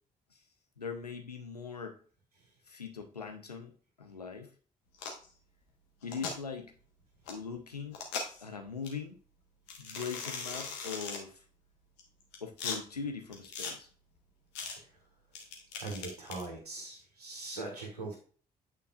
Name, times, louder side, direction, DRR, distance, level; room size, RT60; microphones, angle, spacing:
voice 1, 0.8-2.0 2.7-3.7 4.0-4.5 6.0-6.7 7.3-8.0 8.4-9.2 9.8-11.4 12.4-13.9, left 5 dB, 90° left, 5 dB, 0.6 m, -41 dB
sound 1, 4.9-5.3 6.0-6.3 7.3-7.4 7.9-8.4 8.8-8.9 9.7-11.2 12.0-12.8 13.3-13.7 14.6-14.8 15.4-16.5, left 5 dB, 65° left, 1.3 m, -39 dB
voice 2, 15.8-18.2, right 3 dB, 85° right, -1 dB, 1.5 m, -41 dB
8.6 x 4.6 x 2.4 m, 0.42 s
figure-of-eight pair, 40°, 19 cm